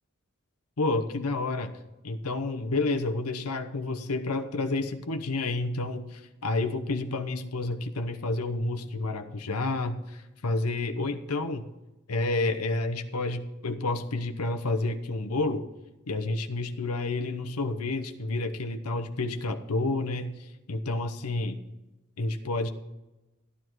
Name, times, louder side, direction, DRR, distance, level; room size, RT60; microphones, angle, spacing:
voice 1, 0.8-1.7 2.0-11.7 12.1-15.7 16.1-21.6 22.2-22.7, left 2 dB, 75° left, 7 dB, 0.9 m, -30 dB
14.0 x 10.0 x 4.6 m, 1.0 s
head